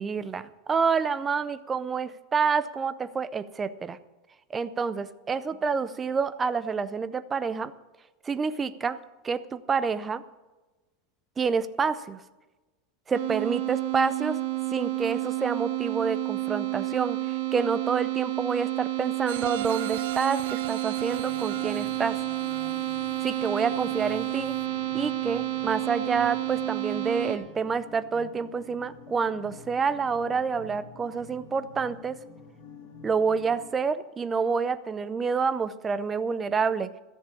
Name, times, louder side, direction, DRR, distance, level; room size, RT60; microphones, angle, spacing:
voice 1, 0.0-4.0 4.5-7.7 8.2-9.0 9.2-10.2 11.4-12.2 13.1-14.4 14.7-22.2 23.2-24.5 24.9-32.2 33.0-36.9, right 5 dB, 15° right, 13 dB, 0.5 m, -28 dB
sound 1, 13.1-27.4, right 18 dB, 80° right, 2.2 m, -30 dB
sound 2, 19.3-24.0 24.4-24.5, right 13 dB, 65° right, 0.5 m, -39 dB
sound 3, 20.9-33.7, left 4 dB, 60° left, 5.5 m, -48 dB
13.5 x 7.3 x 9.8 m, 1.2 s
supercardioid pair, 170°, 0 cm